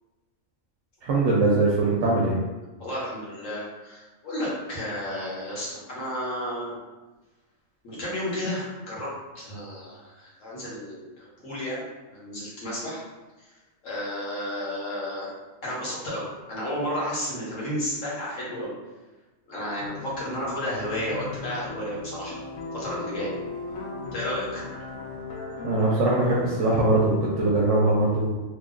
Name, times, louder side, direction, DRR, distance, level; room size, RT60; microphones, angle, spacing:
voice 1, 1.0-2.3 25.6-28.3, right 2 dB, 65° right, -4 dB, 0.9 m, -22 dB
voice 2, 2.8-6.8 7.8-9.1 9.3-13.0 13.8-15.3 15.6-18.7 19.5-22.4 22.7-23.3 24.1-24.6, equal, 65° left, -6 dB, 1.5 m, -32 dB
sound 1, 19.8-27.6, left 3 dB, 85° left, 1.1 m, -38 dB
3.2 x 2.3 x 3.7 m, 1.2 s
omnidirectional pair, 1.4 m